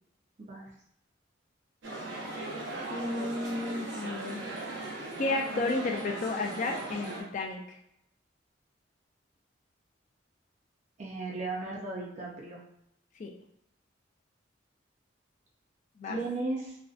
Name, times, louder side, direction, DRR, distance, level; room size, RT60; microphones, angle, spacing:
voice 1, 0.4-0.7 11.0-12.6 16.1-16.8, right 2 dB, 40° right, -3 dB, 0.5 m, -35 dB
sound 1, 1.8-7.2, right 2 dB, 85° right, 0.6 m, -38 dB
voice 2, 2.9-4.4 5.2-7.8 13.2-13.3 16.0-16.2, left 2 dB, 45° left, 2 dB, 0.4 m, -32 dB
2.5 x 2.1 x 2.4 m, 0.74 s
head